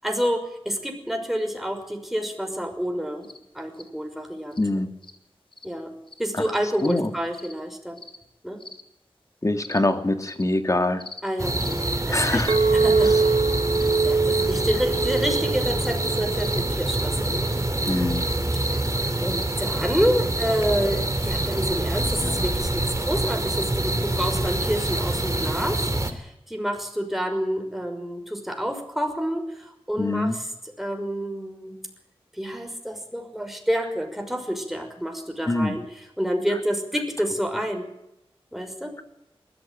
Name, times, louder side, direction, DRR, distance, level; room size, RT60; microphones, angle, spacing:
voice 1, 0.0-4.6 5.6-5.9 6.2-8.0 8.4-8.6 11.2-12.4 12.7-13.4 13.8-17.5 18.5-18.8 19.2-30.4 30.8-31.8 32.4-35.8 36.2-37.9 38.5-38.9, equal, ahead, 4 dB, 6.0 m, -28 dB
sound 1, 3.2-3.4 3.7-3.9 4.5-4.6 5.0-5.2 5.5-5.7 6.1-6.3 6.8-7.0 7.3-7.5 8.0-8.2 8.6-8.8 9.6-9.8 10.2-10.4 11.0-11.2 11.6-11.8 12.3-12.5 13.0-13.2 13.7-13.9 14.5-14.6 15.1-15.3 15.8-16.0 16.4-16.6 17.4-17.6 18.1-18.3 18.7-18.9 19.3-19.5 20.3-20.5 20.9-21.1 21.5-21.7 22.1-22.2, left 3 dB, 55° left, 2.4 m, -42 dB
voice 2, 4.6-4.9 6.3-6.4 6.8-7.1 9.4-11.0 12.1-12.6 13.0-13.1 17.9-18.2 22.2-22.5 30.0-30.4 35.5-35.8, left 2 dB, 30° left, 7 dB, 2.5 m, -24 dB
sound 2, 11.4-26.1, right 1 dB, 30° right, 3.1 m, -26 dB
Chink clink, 12.5-17.7, right 4 dB, 55° right, 1.8 m, -24 dB
20.0 x 14.5 x 9.3 m, 0.83 s
wide cardioid pair, 50°, 10 cm